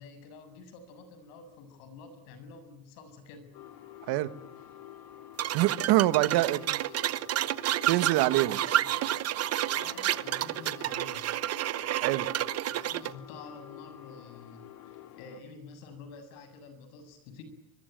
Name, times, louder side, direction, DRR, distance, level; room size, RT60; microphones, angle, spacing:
voice 1, 0.0-3.5 6.2-6.7 8.6-8.9 9.7-11.3 12.7-17.4, left 4 dB, 75° left, 10 dB, 7.4 m, -49 dB
sound 1, 3.5-15.4, left 11 dB, 60° left, 3.4 m, -49 dB
sound 2, 5.4-13.1, right 13 dB, 35° right, 0.9 m, -30 dB
voice 2, 5.5-6.6 7.9-8.6 12.0-12.3, right 17 dB, 60° right, 13 dB, 1.6 m, -24 dB
24.0 x 22.5 x 9.3 m, 0.86 s
supercardioid pair, 130°, 42 cm